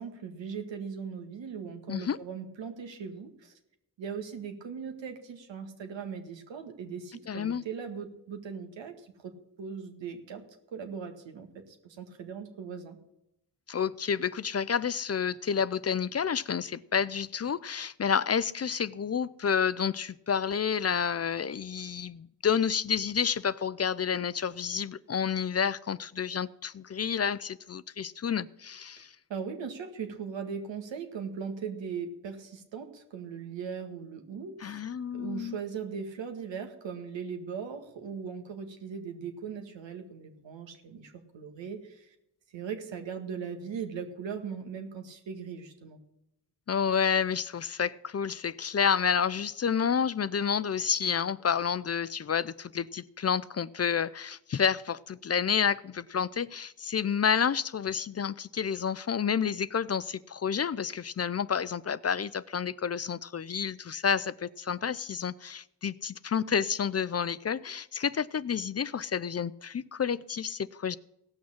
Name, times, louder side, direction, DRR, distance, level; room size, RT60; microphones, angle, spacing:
voice 1, 0.0-3.5 4.0-9.3 9.6-10.4 10.7-13.0 29.3-42.2 42.5-46.0, right 6 dB, 85° right, 5 dB, 1.8 m, -39 dB
voice 2, 7.3-7.6 13.7-29.1 34.6-35.6 46.7-71.0, left 7 dB, 35° left, 18 dB, 0.5 m, -29 dB
16.5 x 6.2 x 7.3 m, 0.84 s
supercardioid pair, 45°, 44 cm